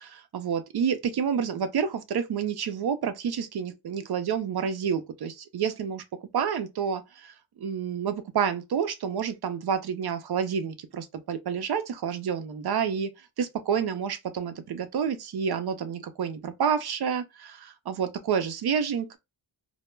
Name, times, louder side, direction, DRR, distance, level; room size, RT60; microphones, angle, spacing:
voice 1, 0.3-6.0 6.3-13.1 13.4-19.2, right 7 dB, 55° right, 0.5 m, -29 dB
2.2 x 2.0 x 3.1 m
wide cardioid pair, 110°, 48 cm